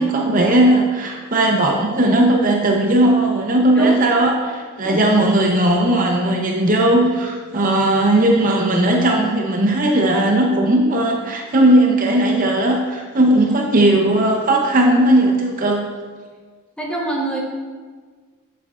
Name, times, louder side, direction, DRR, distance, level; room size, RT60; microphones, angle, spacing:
voice 1, 0.0-15.9, right 1 dB, 40° right, 1 dB, 0.6 m, -17 dB
voice 2, 16.8-17.4, right 1 dB, 5° left, -3 dB, 1.0 m, -25 dB
8.2 x 6.8 x 2.4 m, 1.5 s
head